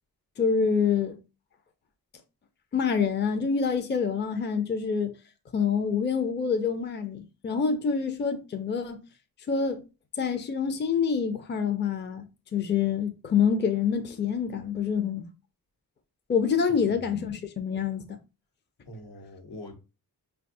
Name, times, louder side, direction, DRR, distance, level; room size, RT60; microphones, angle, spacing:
voice 1, 0.4-1.2 2.7-5.1 5.5-9.0 9.5-9.8 10.2-12.2 12.5-15.3 16.3-18.0, left 6 dB, 30° left, 0.5 m, -26 dB
voice 2, 16.7-17.0 18.9-19.7, left 1 dB, 75° left, 1.2 m, -43 dB
5.2 x 2.3 x 2.6 m
cardioid pair, 65°, 40 cm